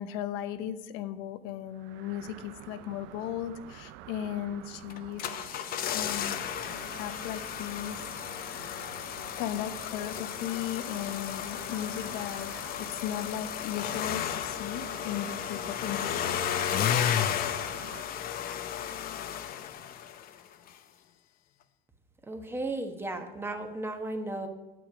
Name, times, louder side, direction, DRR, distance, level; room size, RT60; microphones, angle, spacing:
voice 1, 0.0-5.3 5.9-6.4 6.9-9.1 9.4-16.5, left 10 dB, 75° left, 12 dB, 0.8 m, -37 dB
sound 1, 1.7-18.0, right 12 dB, 65° right, 0.6 m, -48 dB
sound 2, 4.9-20.4 20.7-20.8, left 9 dB, 45° left, 0.7 m, -33 dB
voice 2, 22.3-24.5, right 2 dB, 10° right, 5 dB, 1.1 m, -35 dB
9.2 x 7.9 x 4.9 m, 1.1 s
cardioid pair, 125°, 21 cm